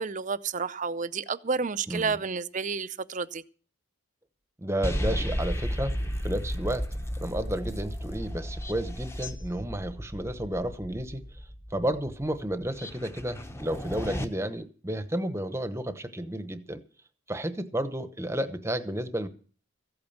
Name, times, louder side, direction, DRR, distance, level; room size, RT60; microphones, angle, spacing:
voice 1, 0.0-3.4, right 5 dB, 35° right, 0.6 m, -30 dB
voice 2, 1.9-2.2 4.6-11.3 11.7-16.8 17.3-19.3, right 1 dB, 15° right, 1.0 m, -32 dB
sound 1, 4.8-14.3, equal, 15° left, 1.0 m, -34 dB
15.0 x 8.7 x 7.2 m
head